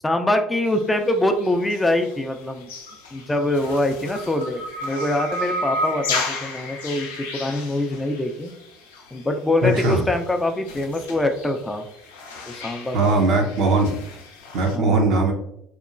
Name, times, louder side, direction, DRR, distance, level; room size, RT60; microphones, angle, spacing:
voice 1, 0.0-2.7 3.1-8.5 9.1-11.9 12.5-13.2 14.7-15.2, left 1 dB, 15° left, 6 dB, 0.3 m, -24 dB
sound 1, 0.6-14.8, left 2 dB, 90° left, 0.4 m, -33 dB
voice 2, 9.6-10.0 12.9-13.9 14.5-15.3, right 2 dB, 65° right, 2 dB, 0.6 m, -19 dB
2.9 x 2.1 x 2.4 m, 0.76 s
hypercardioid pair, 70°, 0 cm